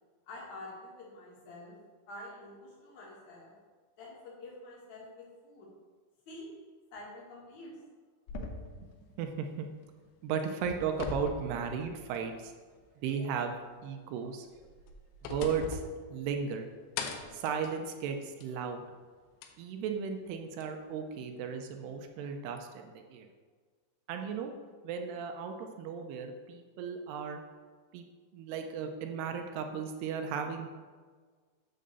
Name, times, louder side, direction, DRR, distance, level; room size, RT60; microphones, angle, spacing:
voice 1, 0.3-1.7 2.1-3.5 4.0-5.7 6.3-6.5 6.9-7.8, left 2 dB, 50° left, -5 dB, 2.9 m, -47 dB
sound 1, 8.3-10.0 10.4-12.4 12.8-12.9 14.5-16.6 17.0-18.6 19.4-19.5 20.6-20.7, left 4 dB, 85° left, 2.8 m, -42 dB
voice 2, 9.2-9.7 10.2-12.5 13.0-13.5 13.8-14.5 15.2-15.8 16.1-16.7 17.3-18.8 19.6-23.3 24.1-24.5 24.8-27.4 27.9-28.1 28.3-30.7, right 6 dB, 80° right, 5 dB, 2.6 m, -35 dB
8.6 x 3.8 x 6.7 m, 1.5 s
omnidirectional pair, 4.9 m